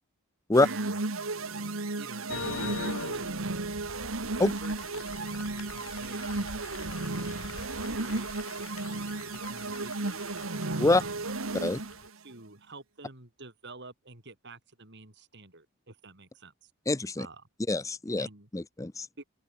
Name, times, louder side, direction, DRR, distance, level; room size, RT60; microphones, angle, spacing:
voice 1, 0.5-1.0 2.0-3.6 4.2-6.8 7.3-10.3 10.9-11.2 12.2-16.7 17.2-17.4 18.2-18.5 19.2-19.3, right 3 dB, 60° right, 4.7 m, -48 dB
sound 1, 0.5-12.1, right 3 dB, 90° right, 1.8 m, -34 dB
sound 2, 2.3-12.1, left 3 dB, 90° left, 2.9 m, -43 dB
voice 2, 16.9-17.3 17.7-18.3 18.5-19.1, left 2 dB, 15° left, 0.6 m, -25 dB
open air
head